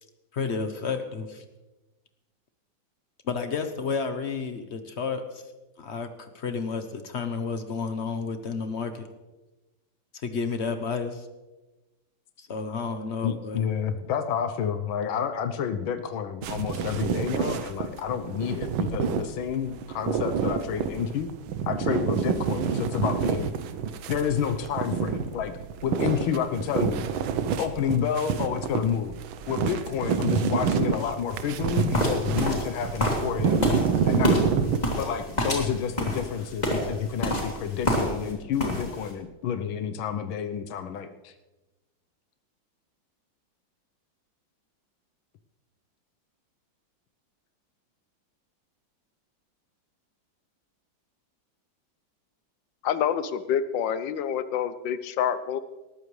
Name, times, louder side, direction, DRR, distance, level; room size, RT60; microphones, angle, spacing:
voice 1, 0.3-1.4 3.2-5.4 5.8-6.1 6.3-9.1 10.1-11.3 12.4-13.7, left 5 dB, 50° left, 8 dB, 0.9 m, -31 dB
voice 2, 13.2-21.3 21.7-23.5 24.1-25.5 25.8-27.0 27.6-29.1 29.5-33.7 34.0-34.4 35.0-41.3, left 8 dB, 90° left, 8 dB, 1.6 m, -29 dB
sound 1, 16.4-34.8, right 7 dB, 85° right, 1.6 m, -28 dB
sound 2, 31.9-38.3 38.6-39.1, equal, 20° left, 3.0 m, -27 dB
voice 3, 52.8-55.6, left 8 dB, 70° left, 13 dB, 1.4 m, -27 dB
19.0 x 14.0 x 3.2 m, 1.1 s
omnidirectional pair, 2.1 m